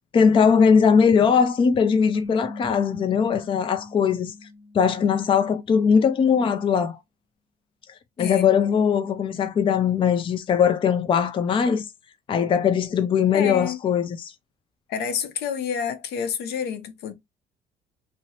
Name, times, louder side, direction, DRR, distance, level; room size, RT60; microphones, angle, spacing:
voice 1, 0.1-4.3 4.7-7.0 8.2-11.9 12.3-14.3, left 6 dB, 30° left, 0.4 m, -20 dB
sound 1, 2.1-5.5, left 2 dB, 45° right, 0.6 m, -40 dB
voice 2, 13.3-13.8 14.9-17.1, left 8 dB, 75° left, 0.7 m, -28 dB
2.8 x 2.1 x 2.8 m
cardioid pair, 110°, 17 cm